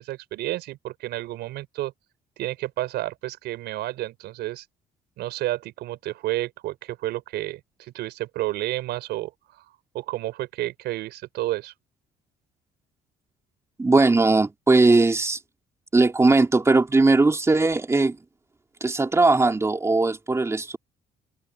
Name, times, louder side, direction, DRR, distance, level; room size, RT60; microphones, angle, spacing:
voice 1, 0.0-1.9 2.4-4.6 5.2-9.6 9.9-11.7, right 16 dB, 80° right, 4.6 m, -31 dB
voice 2, 13.8-15.4 15.9-18.2 18.8-20.8, right 3 dB, 15° right, 3.3 m, -19 dB
cardioid pair, 110°, 17 cm